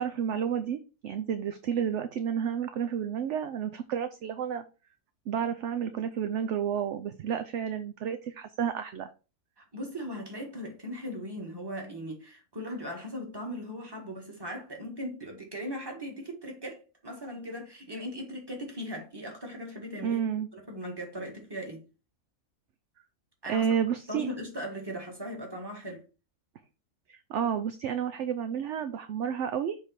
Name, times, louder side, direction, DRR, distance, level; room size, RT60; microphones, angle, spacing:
voice 1, 0.0-4.6 5.3-9.1 20.0-20.5 23.5-24.3 27.1-29.8, right 8 dB, 65° right, 0.8 m, -31 dB
voice 2, 9.6-20.2 20.5-21.8 23.4-23.7 24.1-26.0, equal, 15° right, 1.7 m, -38 dB
7.3 x 3.4 x 4.2 m
omnidirectional pair, 1.5 m